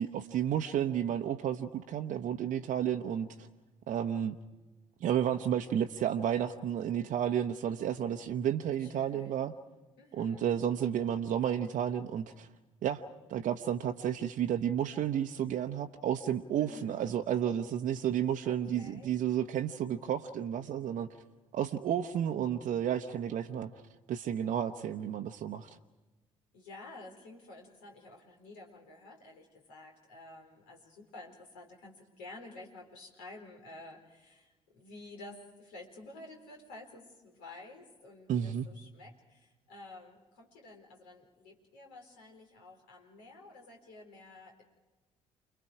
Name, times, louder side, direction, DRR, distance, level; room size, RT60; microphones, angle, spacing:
voice 1, 0.0-3.3 3.9-4.4 5.0-9.5 10.1-12.5 12.8-13.0 13.3-21.1 21.5-23.7 24.1-25.7 38.3-38.7, right 9 dB, 50° right, 5 dB, 0.9 m, -32 dB
voice 2, 8.8-9.5 10.0-10.5 16.6-17.2 18.4-19.2 26.5-44.6, left 2 dB, 70° left, 1 dB, 4.4 m, -51 dB
29.0 x 22.0 x 5.0 m, 1.2 s
figure-of-eight pair, 50°, 16 cm